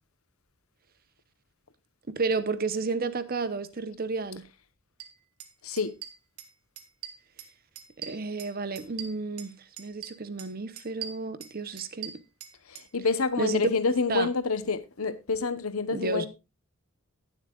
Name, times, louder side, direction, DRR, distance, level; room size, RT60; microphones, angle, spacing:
voice 1, 2.1-4.4 8.0-12.2 13.4-13.7 14.1-14.3 15.9-16.3, right 4 dB, 45° right, 0.8 m, -31 dB
sound 1, 5.0-5.1 5.4-5.5 5.8-6.5 6.8-7.5 7.8-9.5 9.8-10.5 10.8-12.9, right 10 dB, 85° right, 1.7 m, -41 dB
voice 2, 12.7-16.3, left 4 dB, 75° left, 1.0 m, -28 dB
19.5 x 7.4 x 2.4 m
head